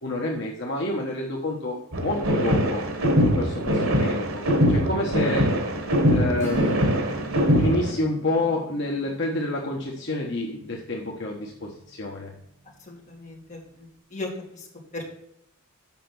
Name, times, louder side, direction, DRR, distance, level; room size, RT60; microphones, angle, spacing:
voice 1, 0.0-2.8 3.2-5.4 6.1-6.8 7.5-12.3, left 2 dB, 55° left, -1 dB, 1.3 m, -29 dB
sound 1, 1.9-7.9, equal, 90° right, 1.6 m, -22 dB
Acoustic guitar / Strum, 6.4-12.6, right 3 dB, 35° right, 2.6 m, -39 dB
voice 2, 12.9-14.7 14.9-15.0, left 2 dB, 35° left, -2 dB, 2.4 m, -37 dB
7.5 x 5.8 x 5.9 m, 0.75 s
head